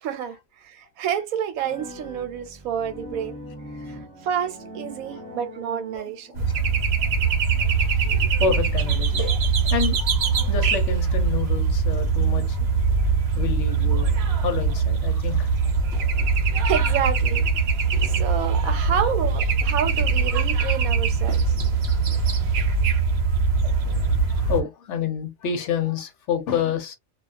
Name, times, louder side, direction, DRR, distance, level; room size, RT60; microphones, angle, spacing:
voice 1, 0.0-3.4 3.8-6.3 8.1-8.3 16.6-21.5, right 9 dB, 90° right, 1.1 m, -29 dB
sound 1, 1.5-6.5, equal, 15° right, 0.9 m, -41 dB
sound 2, 6.3-24.6, right 5 dB, 55° right, 0.8 m, -22 dB
voice 2, 8.4-10.0 10.5-12.6 13.3-15.7 18.0-18.1 18.6-18.9 23.8-26.9, left 6 dB, 65° left, 0.9 m, -29 dB
2.3 x 2.2 x 2.4 m
omnidirectional pair, 1.4 m